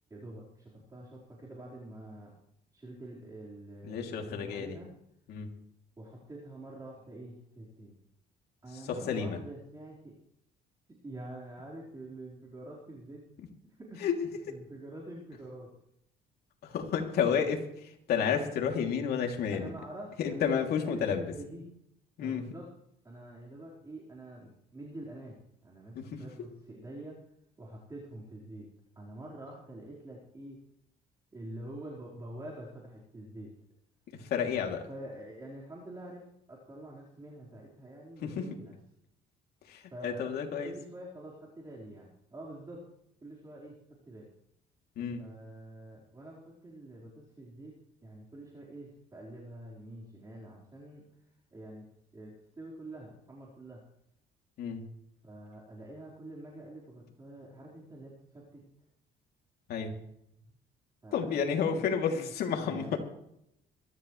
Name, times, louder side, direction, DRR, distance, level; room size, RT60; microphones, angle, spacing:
voice 1, 0.1-2.3 2.7-4.9 6.0-7.9 8.6-10.2 11.0-13.2 13.6-14.0 14.5-15.7 19.5-20.5 20.8-21.7 22.2-22.6 23.0-27.2 27.6-28.7 28.9-30.6 31.3-33.5 34.9-36.2 36.5-38.7 39.9-40.3 40.6-42.8 43.2-43.7 44.1-44.3 45.2-47.7 48.0-51.0 51.5-51.9 52.1-53.8 55.2-58.6 61.0-61.8 62.1-63.0, right 1 dB, 20° right, -6 dB, 4.6 m, -46 dB
voice 2, 3.8-4.8 5.3-5.5 8.7-9.4 14.0-14.2 16.6-19.7 20.2-21.3 22.2-22.4 25.9-26.2 34.1-34.9 38.2-38.5 39.6-40.7 45.0-45.2 54.6-54.9 59.7-60.0 61.1-63.0, left 7 dB, 70° left, 2 dB, 3.0 m, -31 dB
23.0 x 14.0 x 3.3 m, 0.77 s
cardioid pair, 110°, 17 cm